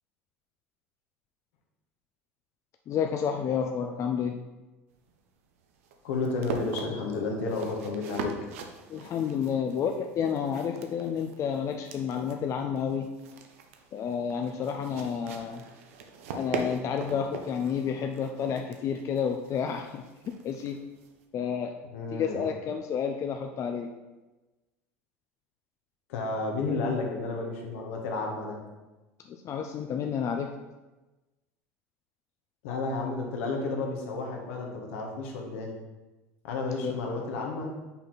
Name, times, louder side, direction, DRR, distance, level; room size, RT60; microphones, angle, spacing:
voice 1, 2.9-4.4 8.9-13.1 13.9-15.6 16.3-20.0 20.4-20.8 21.3-21.7 22.1-23.9 29.3-30.5, left 7 dB, 40° left, 4 dB, 0.5 m, -30 dB
sound 1, 4.9-21.2, right 5 dB, 80° right, 0.7 m, -42 dB
voice 2, 6.0-8.3 21.9-22.4 26.1-28.6 32.6-35.7 36.4-37.7, left 3 dB, 75° left, 1 dB, 1.3 m, -32 dB
5.6 x 4.3 x 4.0 m, 1.1 s
hypercardioid pair, 85°, 7 cm